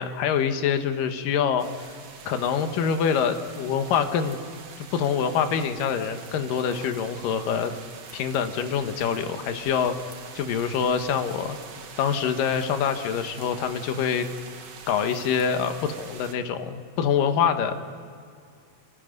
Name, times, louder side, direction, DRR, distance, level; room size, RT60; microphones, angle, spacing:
voice 1, 0.0-2.0 2.3-4.4 4.8-7.7 8.1-10.0 10.4-11.6 12.0-14.3 14.9-17.8, left 7 dB, 85° left, 7 dB, 2.9 m, -25 dB
sound 1, 1.6-16.3, right 5 dB, 50° right, 2.6 m, -44 dB
26.0 x 18.0 x 9.4 m, 2.3 s
omnidirectional pair, 3.9 m